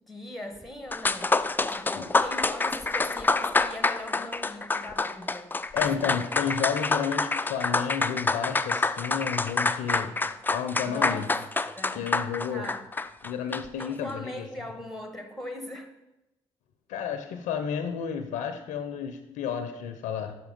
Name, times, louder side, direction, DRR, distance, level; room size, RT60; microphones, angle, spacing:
voice 1, 0.1-1.3 1.6-6.2 10.8-11.3 11.7-12.1 12.5-12.9 13.8-15.9, left 1 dB, ahead, 6 dB, 1.1 m, -40 dB
sound 1, 0.6-0.7 0.9-13.9, left 3 dB, 15° left, 0.3 m, -27 dB
voice 2, 5.7-10.1 10.5-11.3 11.9-12.6 13.2-14.4 16.9-20.4, left 7 dB, 80° left, 8 dB, 0.5 m, -31 dB
5.7 x 5.6 x 5.2 m, 0.97 s
supercardioid pair, 55°, 13 cm